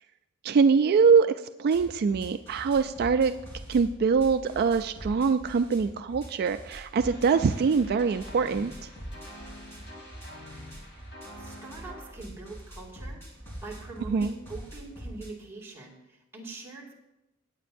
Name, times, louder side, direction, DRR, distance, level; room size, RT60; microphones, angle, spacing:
voice 1, 0.4-1.3 1.6-3.3 3.7-8.9 14.1-14.3, right 5 dB, 50° right, 10 dB, 0.3 m, -23 dB
sound 1, 1.7-15.3, right 1 dB, 10° left, 3.3 m, -44 dB
sound 2, 7.0-12.1, left 1 dB, 55° left, 2.8 m, -46 dB
voice 2, 11.4-13.2 13.6-16.9, right 3 dB, 10° right, -4 dB, 2.2 m, -43 dB
16.5 x 9.0 x 2.6 m, 0.96 s
head